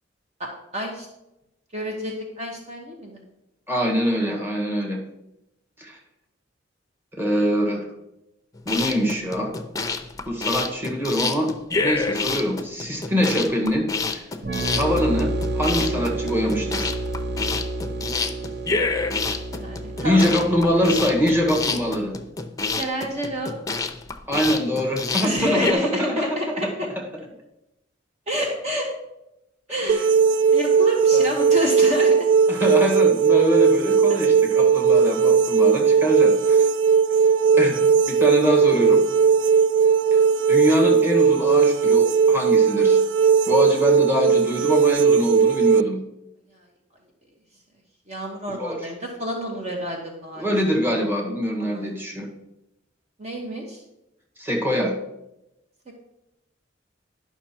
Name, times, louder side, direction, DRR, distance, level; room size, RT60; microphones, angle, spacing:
voice 1, 0.7-1.1 1.7-3.2 19.5-20.3 22.8-23.5 25.2-26.9 28.3-28.9 29.7-30.1 30.5-32.2 34.1-34.2 48.1-50.4 51.6-51.8 53.2-53.8, equal, 35° right, 0 dB, 1.2 m, -28 dB
voice 2, 3.7-5.0 5.8-6.0 7.2-7.8 8.7-9.5 10.3-11.5 11.8-13.9 14.1-14.2 14.7-16.9 20.0-22.1 24.3-26.7 27.0-27.1 29.8-30.0 31.1-31.3 32.5-36.7 37.5-37.8 38.1-39.0 40.1-40.2 40.5-43.0 43.5-46.0 48.5-48.8 50.4-52.3 54.4-54.9, equal, 10° right, -1 dB, 1.6 m, -24 dB
sound 1, 8.6-25.7, left 4 dB, 20° left, 0.6 m, -28 dB
sound 2, 14.4-21.9, right 2 dB, 60° right, 0.9 m, -30 dB
sound 3, 29.9-45.8, right 6 dB, 85° right, 0.3 m, -18 dB
11.0 x 5.9 x 4.4 m, 0.90 s
head